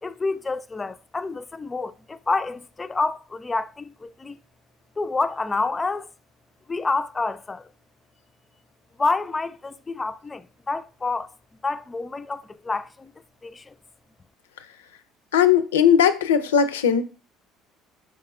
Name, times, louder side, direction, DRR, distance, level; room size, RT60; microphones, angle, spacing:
voice 1, 0.0-4.4 5.0-6.1 6.7-7.6 9.0-11.3 11.6-13.1 13.4-13.7, left 3 dB, 25° left, 0.3 m, -28 dB
voice 2, 15.3-17.0, left 8 dB, 90° left, 0.4 m, -18 dB
4.8 x 4.6 x 2.4 m
hypercardioid pair, 65°, 0 cm